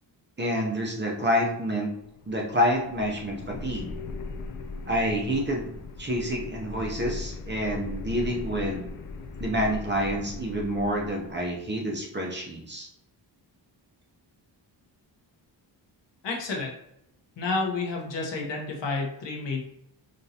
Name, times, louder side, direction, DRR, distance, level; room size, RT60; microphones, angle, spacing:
voice 1, 0.4-1.9 2.3-3.9 4.9-5.7 6.0-8.9 9.4-12.9, equal, 25° right, -1 dB, 0.7 m, -28 dB
sound 1, 2.0-11.5, left 3 dB, 50° left, 0.5 m, -39 dB
voice 2, 16.2-16.7 17.4-19.6, left 3 dB, 75° left, 0 dB, 1.0 m, -30 dB
5.2 x 2.6 x 2.8 m, 0.79 s
wide cardioid pair, 160°, 44 cm